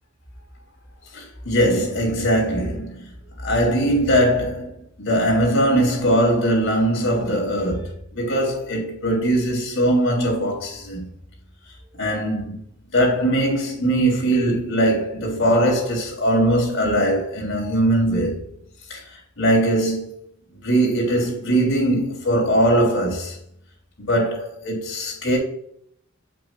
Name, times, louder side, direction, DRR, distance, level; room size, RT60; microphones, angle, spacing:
voice 1, 1.1-3.0 3.4-4.7 5.0-11.1 12.0-12.6 12.9-18.4 18.9-19.0 19.4-20.1 20.6-23.3 24.1-25.4, right 1 dB, 70° left, 3.1 m, -20 dB
7.9 x 7.8 x 2.4 m
head